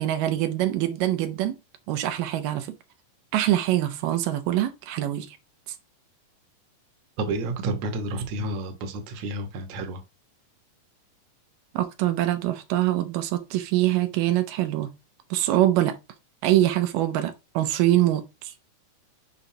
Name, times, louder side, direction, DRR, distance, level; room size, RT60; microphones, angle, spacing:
voice 1, 0.0-1.6 1.9-2.7 3.3-5.4 11.7-14.9 15.3-16.0 16.4-18.5, right 13 dB, 85° right, 2.4 m, -24 dB
voice 2, 7.2-10.0, right 2 dB, 65° right, 2.2 m, -30 dB
7.0 x 5.1 x 2.7 m
omnidirectional pair, 3.8 m